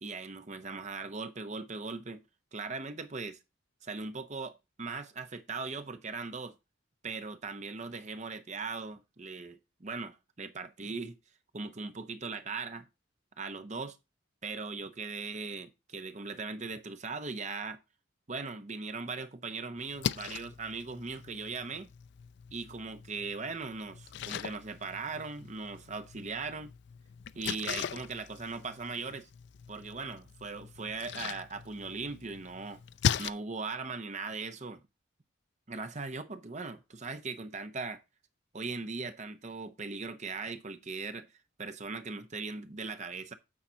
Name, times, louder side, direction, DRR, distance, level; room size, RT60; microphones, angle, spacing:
voice 1, 0.0-2.2 2.5-3.4 3.8-6.5 7.0-11.2 11.5-12.9 13.4-14.0 14.4-17.8 18.3-21.9 22.5-26.7 27.3-29.3 29.7-32.8 33.2-34.8 35.7-38.0 38.5-41.3 41.6-43.3, right 4 dB, 35° right, 0.8 m, -39 dB
Splash splatter, 19.8-33.3, left 8 dB, 60° left, 0.4 m, -39 dB
8.8 x 4.1 x 5.6 m
head